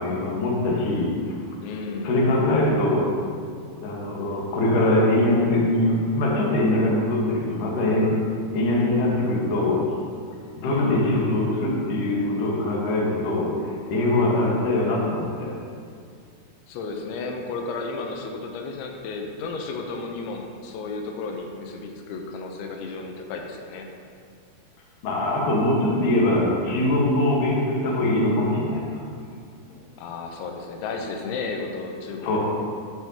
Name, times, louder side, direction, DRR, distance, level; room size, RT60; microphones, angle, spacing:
voice 1, 0.0-1.4 2.0-3.0 3.8-8.3 8.5-9.8 10.6-15.5 25.0-29.0 32.2-32.4, left 1 dB, 65° left, -3 dB, 2.3 m, -22 dB
voice 2, 1.6-2.1 10.6-11.1 16.7-23.9 30.0-32.4, left 3 dB, 85° left, 2 dB, 3.1 m, -33 dB
12.0 x 5.7 x 2.8 m, 2.2 s
omnidirectional pair, 5.2 m